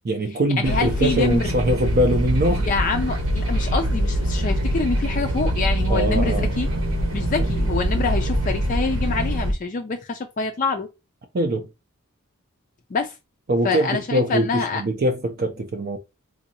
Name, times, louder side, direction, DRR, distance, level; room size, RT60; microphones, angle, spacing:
voice 1, 0.0-2.7 5.9-6.5 7.4-7.5 11.3-11.7 13.5-16.0, right 1 dB, 45° right, 0.5 m, -22 dB
voice 2, 0.6-1.5 2.7-6.7 7.1-10.9 12.9-13.1 13.6-14.8, left 4 dB, 40° left, 0.4 m, -26 dB
sound 1, 0.6-9.5, equal, 80° right, 1.0 m, -23 dB
3.8 x 2.6 x 2.7 m
head